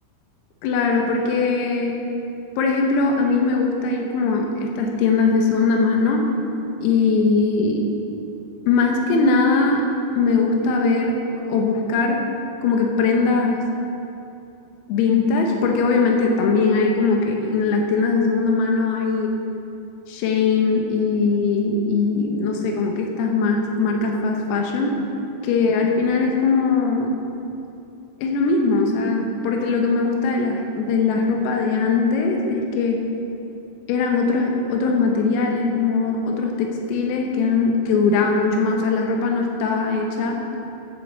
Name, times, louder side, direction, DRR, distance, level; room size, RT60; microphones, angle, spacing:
voice 1, 0.6-2.0 2.6-6.3 6.8-7.9 8.7-9.9 10.2-11.2 11.5-12.3 12.6-13.6 14.9-19.3 20.1-25.0 25.4-27.1 28.2-33.0 33.9-40.4, left 4 dB, 85° left, 2 dB, 3.8 m, -20 dB
11.0 x 8.3 x 7.2 m, 2.7 s
omnidirectional pair, 5.9 m